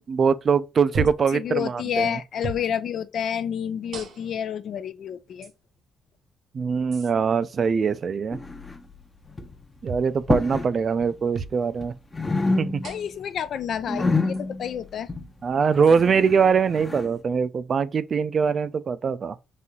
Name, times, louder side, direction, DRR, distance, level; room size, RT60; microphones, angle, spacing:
voice 1, 0.0-2.2 6.5-8.4 9.8-11.9 12.6-12.8 15.4-19.4, right 6 dB, 45° right, 0.4 m, -22 dB
sound 1, 0.9-1.3 2.4-2.7 3.9-4.4 5.4-5.5 6.9-7.1 9.8-10.1 11.3-11.6 12.8-13.2 14.3-14.4 15.8-16.0, right 5 dB, 70° right, 0.9 m, -34 dB
voice 2, 1.0-5.5 12.8-15.1, left 8 dB, 65° left, 0.4 m, -29 dB
sound 2, 8.3-9.0 9.3-9.6 10.2-10.7 11.0-11.9 12.1-13.1 13.4-17.1, left 3 dB, 20° left, 0.7 m, -28 dB
4.2 x 2.8 x 3.6 m
cardioid pair, 90°, 0 cm